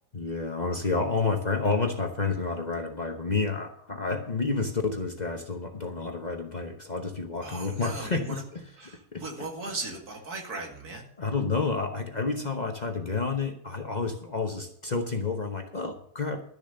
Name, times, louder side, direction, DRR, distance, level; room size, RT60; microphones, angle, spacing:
voice 1, 0.1-8.6 9.1-9.5 11.2-16.5, left 4 dB, 35° left, 5 dB, 0.9 m, -30 dB
voice 2, 7.4-8.4 8.8-11.1, right 3 dB, 75° right, 2 dB, 2.6 m, -37 dB
12.5 x 7.1 x 6.7 m, 0.65 s
omnidirectional pair, 1.6 m